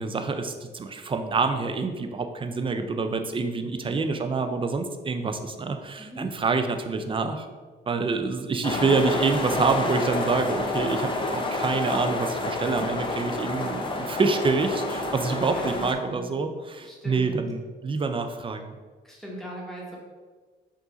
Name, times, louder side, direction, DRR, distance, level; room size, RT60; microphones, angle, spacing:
voice 1, 0.0-7.5 7.9-18.8, right 4 dB, 25° right, 7 dB, 0.4 m, -27 dB
voice 2, 6.0-6.3 8.7-9.0 15.3-16.3 16.8-17.4 19.0-20.0, equal, ahead, -3 dB, 1.3 m, -40 dB
sound 1, 8.6-15.9, left 2 dB, 25° left, 0.6 m, -29 dB
4.8 x 2.6 x 3.8 m, 1.4 s
cardioid pair, 90°, 20 cm